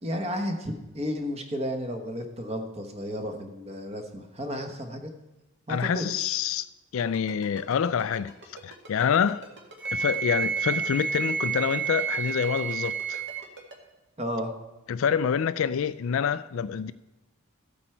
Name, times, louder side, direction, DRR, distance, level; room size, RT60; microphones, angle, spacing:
voice 1, 0.0-5.1 5.7-6.4 14.2-14.5, equal, 25° right, 1.1 m, -33 dB
voice 2, 5.7-6.7 6.9-8.3 8.6-9.4 9.9-13.2 14.9-16.9, left 7 dB, 65° left, 0.3 m, -27 dB
Ringtone, 7.0-13.8, right 2 dB, 55° right, 1.9 m, -45 dB
Wind instrument woodwind instrument, 9.8-13.5, right 6 dB, 5° right, 0.4 m, -30 dB
14.5 x 8.3 x 4.5 m
head